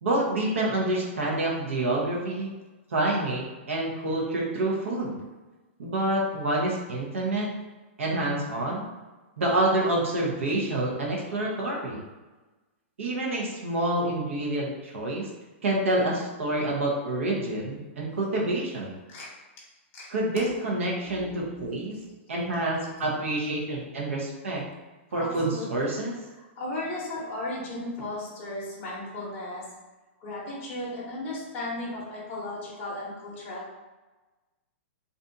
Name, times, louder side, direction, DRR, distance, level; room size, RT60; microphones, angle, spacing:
voice 1, 0.0-2.5 2.9-5.2 5.8-7.5 8.0-8.9 9.4-12.0 13.0-15.3 15.6-18.9 20.1-22.0 22.3-24.6 25.1-26.1, right 1 dB, 85° right, -3 dB, 0.8 m, -27 dB
voice 2, 21.0-22.2 22.4-22.9 25.1-26.0 26.6-29.6 30.2-33.7, left 1 dB, 30° left, -7 dB, 0.7 m, -36 dB
2.6 x 2.3 x 2.6 m, 1.2 s
hypercardioid pair, 160°, 7 cm